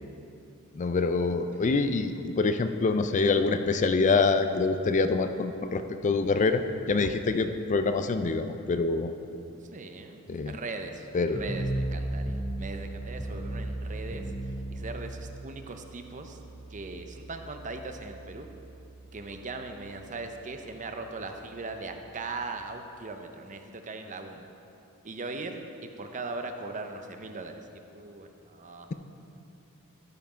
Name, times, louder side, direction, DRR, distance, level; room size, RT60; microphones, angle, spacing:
voice 1, 0.7-6.6 6.9-9.1 10.3-10.6 11.1-11.4, left 4 dB, 35° left, 9 dB, 0.4 m, -25 dB
voice 2, 9.7-16.4 16.7-18.5 19.1-24.5 25.0-28.9, right 3 dB, 35° right, 5 dB, 0.6 m, -39 dB
sound 1, 11.3-22.5, right 1 dB, 20° left, 0.7 m, -37 dB
13.0 x 5.8 x 5.0 m, 2.8 s
head